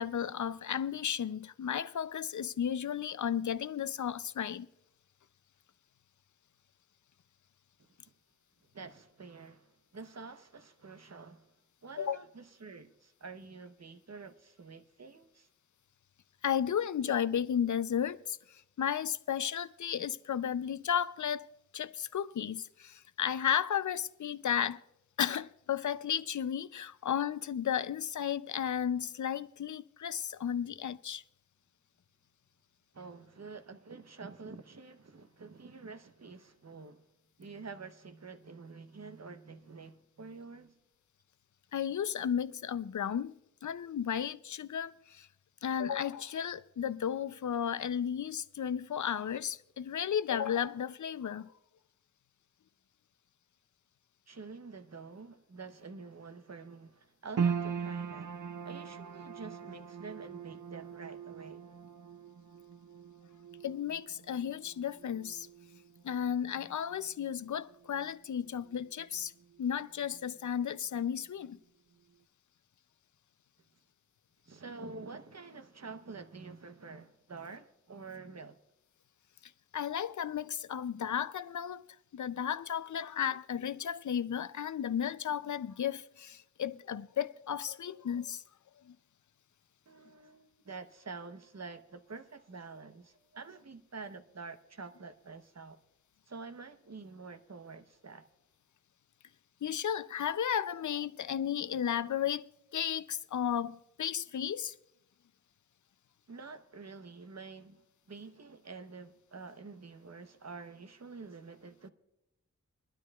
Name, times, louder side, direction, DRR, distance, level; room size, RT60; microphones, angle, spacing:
voice 1, 0.0-4.7 12.0-12.2 16.4-21.5 21.7-24.8 25.2-31.2 41.7-45.3 45.6-51.5 63.6-65.5 66.0-69.3 69.6-71.6 79.7-81.8 82.1-88.4 88.9-89.0 99.6-104.7, left 8 dB, 70° left, 0.5 m, -34 dB
voice 2, 8.7-11.5 11.8-15.5 32.9-37.1 37.4-40.8 54.3-61.7 74.5-78.6 89.9-95.8 96.3-98.3 106.3-111.9, right 4 dB, 60° right, 0.9 m, -48 dB
sound 1, 57.4-69.8 70.0-71.0 71.4-71.5, right 6 dB, 80° right, 0.5 m, -41 dB
22.5 x 12.5 x 2.3 m
wide cardioid pair, 65°, 31 cm